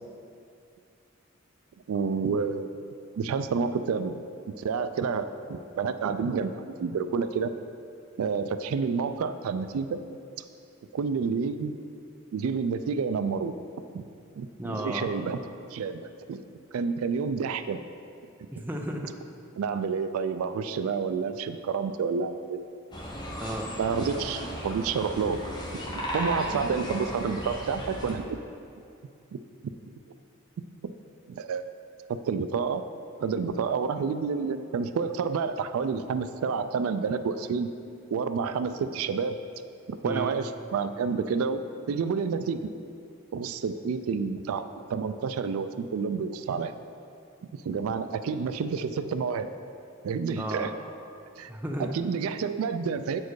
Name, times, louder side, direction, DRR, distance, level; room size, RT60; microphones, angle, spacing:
voice 1, 1.9-2.7 3.2-4.2 4.6-6.5 6.8-7.5 8.2-10.0 10.9-11.7 12.3-13.5 13.9-14.0 14.4-15.4 15.7-16.0 16.3-16.4 16.7-17.8 19.6-22.6 23.8-25.4 26.1-28.2 29.3-29.4 30.8-30.9 31.3-31.6 32.1-32.8 33.2-37.7 38.1-39.4 39.9-41.6 41.9-42.6 43.3-46.7 47.6-49.5 50.0-50.7 51.4-51.5 51.8-53.2, right 5 dB, 85° right, 11 dB, 0.3 m, -29 dB
voice 2, 14.6-15.1 18.5-19.1 23.4-23.7 40.0-40.3 50.4-50.7 51.5-52.0, right 1 dB, 10° right, 2 dB, 0.4 m, -33 dB
sound 1, 22.9-28.1, equal, 20° left, 0.7 m, -35 dB
8.2 x 4.4 x 4.7 m, 2.5 s
head